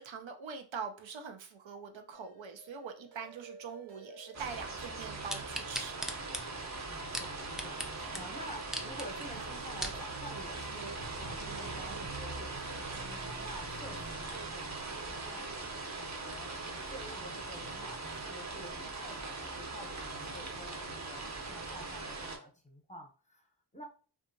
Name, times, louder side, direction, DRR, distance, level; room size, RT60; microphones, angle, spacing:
voice 1, 0.0-6.1, right 5 dB, 90° right, 5 dB, 0.6 m, -43 dB
sound 1, 2.1-8.2 9.3-9.6, right 3 dB, 65° right, 0.9 m, -56 dB
sound 2, 4.3-22.4, right 3 dB, 40° right, 0.7 m, -41 dB
sound 3, 5.3-7.9 8.1-8.2 8.6-9.1 9.5-10.0 10.6-10.7, equal, ahead, 0.3 m, -38 dB
voice 2, 6.9-15.6 16.0-23.9, equal, 15° left, 1 dB, 0.7 m, -50 dB
2.7 x 2.3 x 2.6 m, 0.37 s
wide cardioid pair, 50°, 44 cm